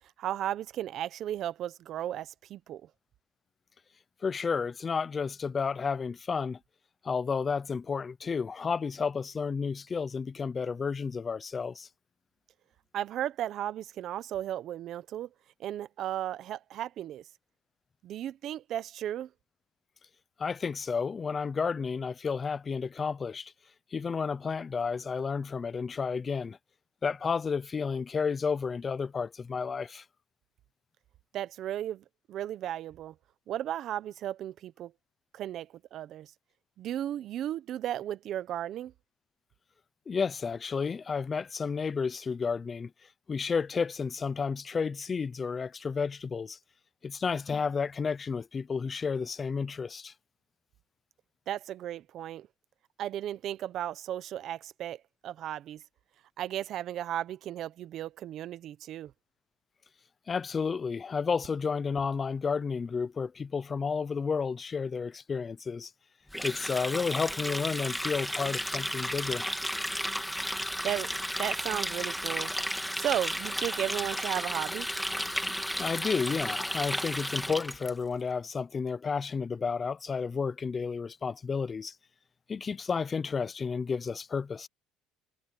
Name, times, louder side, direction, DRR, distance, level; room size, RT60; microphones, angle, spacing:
voice 1, 0.2-2.9 12.9-15.3 15.6-17.2 18.0-19.3 31.3-33.1 33.5-34.9 35.3-36.3 36.8-38.9 51.5-52.5 53.0-55.8 56.4-59.1 70.8-71.1 71.4-72.5 72.9-74.9, right 11 dB, 50° right, 0.9 m, -35 dB
voice 2, 4.2-6.6 7.0-11.9 20.4-23.5 23.9-26.6 27.0-30.0 40.1-42.9 43.3-46.6 47.0-50.1 60.3-65.9 66.4-69.5 75.8-81.9 82.5-84.7, left 5 dB, 25° left, 0.7 m, -31 dB
Water tap faucet, 66.3-77.9, equal, ahead, 1.8 m, -33 dB
cardioid pair, 135°, 0 cm